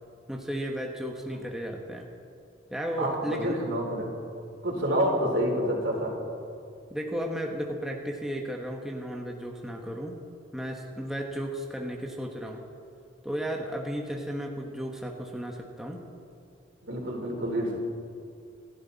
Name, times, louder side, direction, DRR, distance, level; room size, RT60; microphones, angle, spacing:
voice 1, 0.3-2.0 2.7-3.6 6.9-10.2 10.5-12.6 13.2-16.0, equal, ahead, 0 dB, 1.3 m, -34 dB
voice 2, 3.0-4.1 4.6-6.2 16.8-17.7, equal, 70° right, -1 dB, 4.0 m, -28 dB
29.0 x 11.5 x 4.2 m, 2.5 s
head